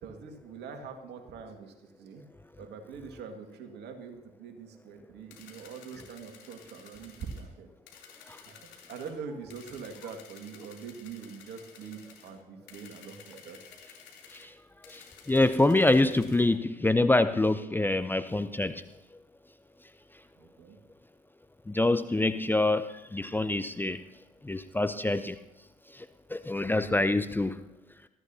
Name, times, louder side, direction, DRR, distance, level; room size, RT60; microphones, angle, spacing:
voice 1, 0.0-2.2 2.6-7.7 8.5-13.6 20.4-20.8, right 5 dB, 60° right, 5 dB, 2.2 m, -44 dB
sound 1, 5.3-7.4 7.9-9.1 9.5-12.3 12.7-14.5 14.8-16.4, left 7 dB, 65° left, 3.3 m, -53 dB
voice 2, 14.9-18.8 21.7-24.0 24.4-25.4 25.9-27.6, left 2 dB, 10° left, 11 dB, 0.6 m, -26 dB
20.5 x 14.0 x 2.9 m, 0.94 s
hypercardioid pair, 55°, 20 cm